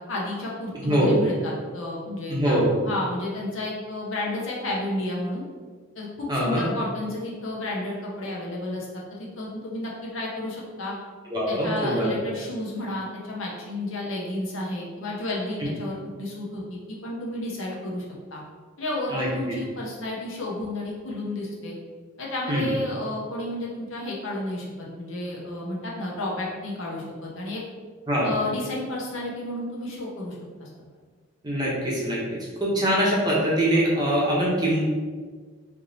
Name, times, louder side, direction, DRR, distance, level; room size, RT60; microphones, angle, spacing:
voice 1, 0.1-5.4 5.9-10.9 11.5-18.0 18.3-18.4 18.8-21.8 22.2-27.6 28.2-30.7 32.7-32.8, left 1 dB, 65° left, -3 dB, 0.9 m, -32 dB
voice 2, 0.7-1.1 2.3-2.7 6.3-6.7 11.3-12.1 15.6-15.7 19.1-19.5 22.5-22.7 28.1-28.3 31.4-32.2 32.6-34.8, equal, 20° right, -5 dB, 0.8 m, -23 dB
3.5 x 2.9 x 3.9 m, 1.5 s
head